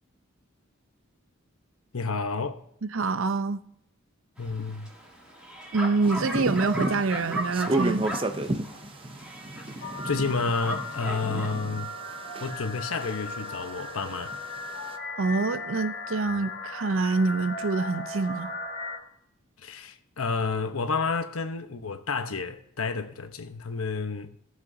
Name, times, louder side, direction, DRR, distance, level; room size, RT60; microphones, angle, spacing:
voice 1, 1.9-2.6 4.4-4.9 9.8-11.9 12.4-14.4 19.6-24.3, left 4 dB, 85° left, 1.0 m, -30 dB
voice 2, 2.8-3.6 5.7-8.1 15.2-18.5, right 3 dB, 65° right, 0.6 m, -26 dB
Bark, 4.4-11.5, right 1 dB, 5° right, 2.5 m, -37 dB
sound 1, 6.0-12.8 13.0-14.9, right 2 dB, 25° right, 0.6 m, -32 dB
sound 2, 9.8-19.0, left 2 dB, 45° left, 2.3 m, -37 dB
18.0 x 7.2 x 2.7 m
head